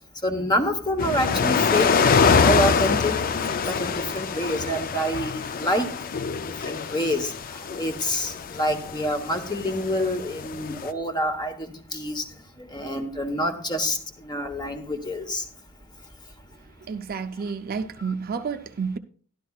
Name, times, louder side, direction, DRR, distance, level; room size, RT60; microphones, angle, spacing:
voice 1, 0.2-3.1 3.6-6.0 6.4-12.3 12.6-15.5, equal, 20° left, 1.1 m, -27 dB
sound 1, 1.0-10.9, left 5 dB, 45° left, 0.4 m, -25 dB
voice 2, 16.8-19.0, right 5 dB, 45° right, 0.5 m, -30 dB
12.0 x 12.0 x 2.4 m
head